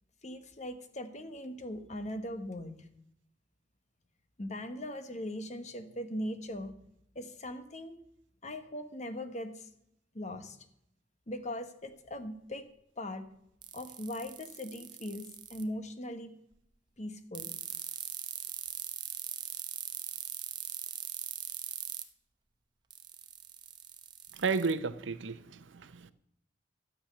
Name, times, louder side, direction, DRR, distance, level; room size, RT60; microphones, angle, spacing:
voice 1, 0.2-2.9 4.4-6.8 7.1-7.9 8.4-9.7 10.1-10.6 11.3-12.6 13.0-13.3 13.7-16.3 17.0-17.5, left 1 dB, 40° left, 1.2 m, -40 dB
sound 1, 13.6-15.6 17.3-22.0 22.9-24.7, right 8 dB, 25° right, 0.8 m, -40 dB
voice 2, 24.3-26.1, right 4 dB, 85° right, 0.7 m, -33 dB
13.0 x 7.4 x 6.6 m
head